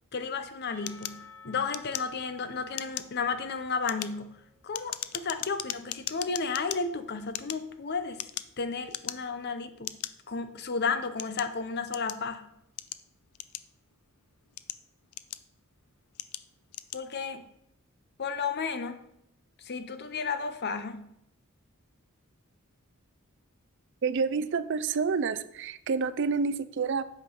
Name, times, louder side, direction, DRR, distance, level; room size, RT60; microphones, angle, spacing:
voice 1, 0.1-4.4 4.6-8.2 8.6-9.9 10.3-12.5 16.9-17.4 18.2-19.0 19.6-21.0, left 5 dB, 50° left, 10 dB, 0.7 m, -33 dB
Percussion / Church bell, 0.7-4.6, left 4 dB, 10° left, 3.0 m, -54 dB
sound 1, 0.9-2.4 2.7-3.2 3.7-6.8 7.3-8.6 8.9-9.4 9.8-10.1 10.8-12.3 12.8-13.9 14.4-15.6 16.1-16.4 16.7-17.0, left 14 dB, 85° left, 0.4 m, -38 dB
voice 2, 24.0-27.0, right 5 dB, 55° right, 14 dB, 0.4 m, -28 dB
8.2 x 5.2 x 5.4 m, 0.78 s
head